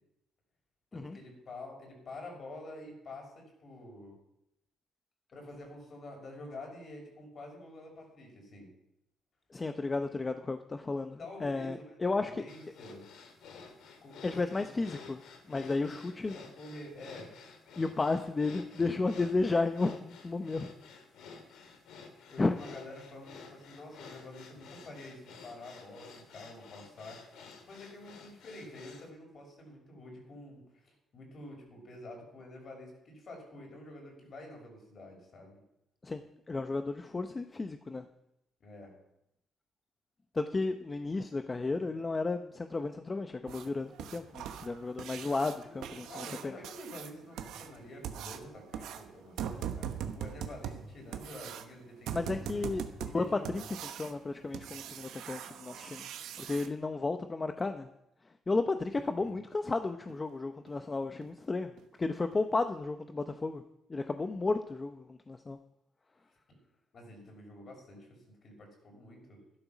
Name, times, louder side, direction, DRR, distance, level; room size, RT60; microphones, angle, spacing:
voice 1, 0.9-4.2 5.3-8.7 11.2-13.1 14.0-14.7 15.6-15.9 16.3-17.3 22.3-27.2 27.6-35.6 38.6-38.9 45.7-52.7 53.0-53.5 59.2-59.4 66.5-66.6 66.9-69.4, left 1 dB, 50° left, 1 dB, 6.2 m, -48 dB
voice 2, 9.5-12.3 14.2-15.2 15.5-16.4 17.8-20.7 22.4-22.6 36.0-36.2 36.5-38.0 40.3-46.5 52.1-52.9 53.1-53.6 53.9-56.1 56.4-57.9 58.5-61.7 62.0-63.6 63.9-65.6, left 3 dB, 25° left, 8 dB, 0.8 m, -33 dB
sound 1, 12.5-29.1, left 5 dB, 85° left, 2.3 m, -52 dB
sound 2, 43.5-56.7 59.0-59.1 59.5-59.6 60.1-60.2 60.7-60.8 61.2-61.4 61.8-61.9 62.3-62.4, right 9 dB, 85° right, 1.1 m, -42 dB
12.0 x 12.0 x 6.1 m, 0.83 s
cardioid pair, 90°, 0 cm